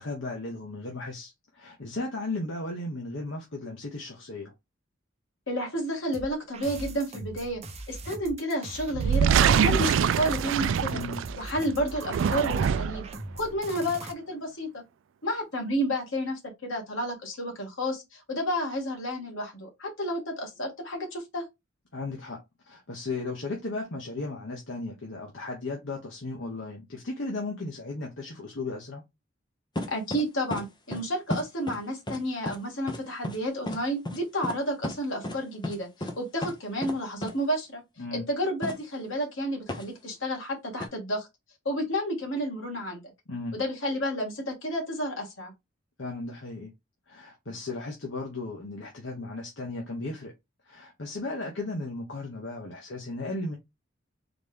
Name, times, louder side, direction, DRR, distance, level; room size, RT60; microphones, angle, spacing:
voice 1, 0.0-4.5 10.9-11.2 21.9-22.4 22.7-29.0 38.0-38.3 43.3-43.6 46.0-46.7 47.1-50.3 50.7-53.6, left 2 dB, 70° left, 1.1 m, -35 dB
voice 2, 5.5-7.6 7.9-11.0 11.4-13.0 13.3-14.8 15.2-21.4 29.9-37.8 38.1-41.3 41.7-43.0 43.5-45.5, equal, 90° left, 2.0 m, -31 dB
sound 1, 6.1-14.1, right 2 dB, 35° right, 0.7 m, -41 dB
sound 2, 8.9-11.5 12.0-13.1, right 7 dB, 80° right, 0.3 m, -24 dB
sound 3, 29.8-30.2 30.5-30.6 30.9-31.0 31.3-31.8 32.1-32.2 32.5-32.6 32.9-33.0 33.2-33.4 33.7-33.8 34.0-34.2 34.4-34.6 34.8-34.9 35.2-35.4 35.6-35.7 36.0-36.1 36.4-36.5 36.8-37.0 37.2-37.3 38.6-38.7 39.7-39.8 40.8-40.9, left 1 dB, 25° left, 0.8 m, -32 dB
4.1 x 3.2 x 3.5 m
head